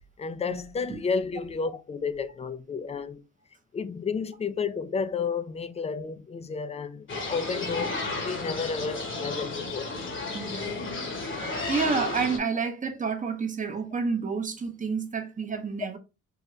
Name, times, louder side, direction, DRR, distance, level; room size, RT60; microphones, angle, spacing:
voice 1, 0.2-3.2 3.7-9.9, left 5 dB, 20° left, 0.4 m, -32 dB
sound 1, 7.1-12.4, left 3 dB, 40° left, 1.0 m, -33 dB
voice 2, 10.3-10.8 11.2-16.0, right 5 dB, 25° right, 0.7 m, -30 dB
3.8 x 2.2 x 3.0 m
cardioid pair, 90°, 30 cm